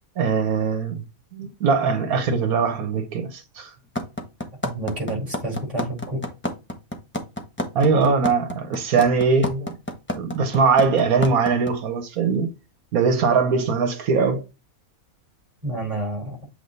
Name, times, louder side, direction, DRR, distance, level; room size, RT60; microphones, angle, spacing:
voice 1, 0.2-1.1 1.3-3.7 7.7-9.7 10.1-12.5 12.9-14.4, right 5 dB, 85° right, 1.4 m, -21 dB
sound 1, 4.0-11.7, left 1 dB, 10° left, 1.1 m, -28 dB
voice 2, 4.6-6.2 15.6-16.4, right 2 dB, 25° right, 4.4 m, -29 dB
8.3 x 2.9 x 4.0 m
omnidirectional pair, 1.5 m